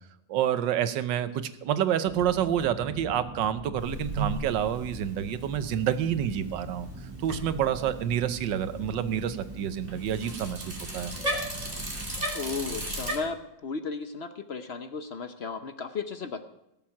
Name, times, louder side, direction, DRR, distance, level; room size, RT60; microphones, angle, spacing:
voice 1, 0.3-6.9 7.2-11.1, right 10 dB, 80° right, 12 dB, 1.5 m, -28 dB
sound 1, 2.0-12.2, right 2 dB, 55° right, 2.5 m, -43 dB
Bicycle, 3.8-13.2, right 1 dB, 20° right, 2.7 m, -37 dB
voice 2, 12.3-16.4, left 5 dB, 50° left, 10 dB, 0.8 m, -35 dB
17.5 x 7.5 x 5.9 m, 0.86 s
omnidirectional pair, 2.0 m